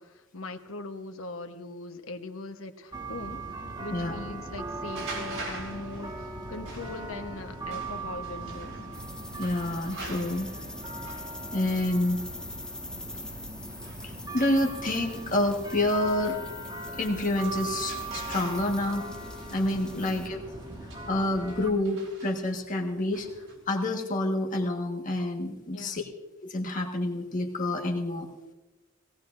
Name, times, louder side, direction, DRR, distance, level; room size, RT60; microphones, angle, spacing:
voice 1, 0.0-3.4 3.8-8.8 19.9-20.4 25.7-26.1, left 2 dB, 75° left, 6 dB, 1.1 m, -41 dB
sound 1, 2.9-21.7, right 2 dB, 20° right, 1.5 m, -39 dB
sound 2, 4.8-23.6, right 3 dB, 80° right, 4.7 m, -46 dB
sound 3, 8.9-20.3, left 2 dB, 5° left, 0.8 m, -44 dB
voice 2, 9.4-10.5 10.8-11.2 11.5-12.2 14.0-16.4 16.9-19.0 19.5-20.4 21.1-23.3 23.7-26.1 26.4-28.3, left 1 dB, 40° left, 1 dB, 1.4 m, -28 dB
19.0 x 18.0 x 2.6 m, 1.1 s
head